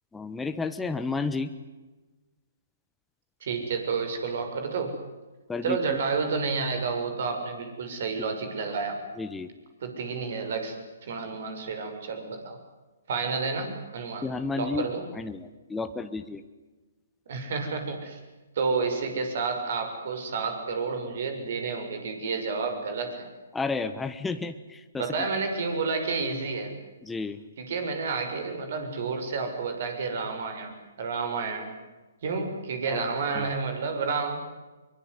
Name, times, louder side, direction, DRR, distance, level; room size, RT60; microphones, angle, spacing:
voice 1, 0.1-1.5 5.5-6.0 8.2-8.3 9.2-9.5 14.2-14.9 15.1-16.4 23.5-25.3 27.0-27.4 32.9-33.1 33.3-33.5, left 4 dB, 10° left, 8 dB, 1.3 m, -32 dB
voice 2, 3.4-5.0 5.6-9.0 9.8-10.7 11.0-12.6 13.1-14.2 14.6-15.0 17.3-18.2 18.5-23.3 25.0-26.7 27.6-31.7 32.2-34.4, right 4 dB, 55° right, 6 dB, 6.9 m, -30 dB
24.0 x 23.5 x 9.7 m, 1.2 s
hypercardioid pair, 135°, 0 cm